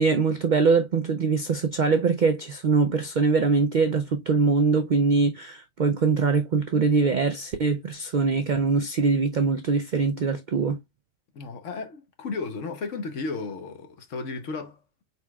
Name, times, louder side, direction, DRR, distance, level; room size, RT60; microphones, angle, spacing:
voice 1, 0.0-10.8, right 4 dB, 65° right, 0.4 m, -23 dB
voice 2, 11.3-14.8, left 4 dB, 70° left, 1.3 m, -34 dB
4.5 x 4.2 x 2.3 m
omnidirectional pair, 1.4 m